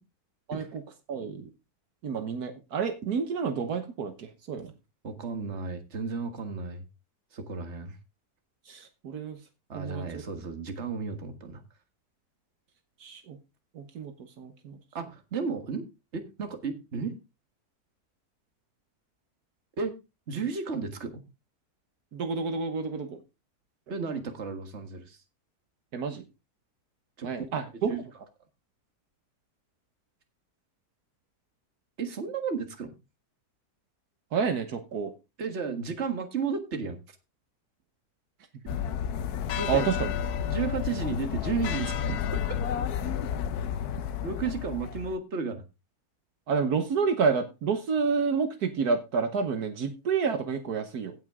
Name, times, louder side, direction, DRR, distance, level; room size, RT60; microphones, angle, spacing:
voice 1, 0.5-0.8 1.1-1.5 2.0-4.7 8.7-9.4 9.7-10.2 13.0-13.4 13.7-14.8 22.1-23.2 25.9-26.2 27.2-28.0 34.3-35.1 38.7-38.8 39.7-40.1 46.5-51.1, right 5 dB, 75° right, 8 dB, 1.6 m, -29 dB
voice 2, 5.0-6.8 7.3-8.0 9.7-11.6 14.9-15.9 16.1-17.1 19.8-19.9 20.3-21.2 23.9-25.2 27.2-27.5 27.9-28.0 32.0-32.9 35.4-37.2 39.6-39.9 40.5-42.3 44.2-45.6, right 5 dB, 45° right, 6 dB, 1.9 m, -33 dB
sound 1, 38.7-45.2, left 8 dB, 80° left, 1.3 m, -31 dB
17.0 x 5.9 x 3.6 m, 0.26 s
omnidirectional pair, 1.6 m